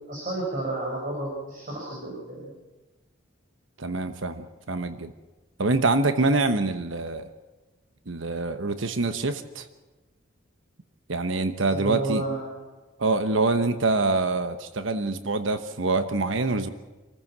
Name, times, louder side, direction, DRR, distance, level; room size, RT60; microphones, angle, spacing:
voice 1, 0.1-2.5 11.7-12.6, right 2 dB, 40° right, -2 dB, 6.1 m, -31 dB
voice 2, 3.8-5.1 5.6-7.3 8.1-9.7 11.1-12.2 13.0-16.7, right 3 dB, 75° right, 10 dB, 1.1 m, -25 dB
26.5 x 15.0 x 7.5 m, 1.2 s
head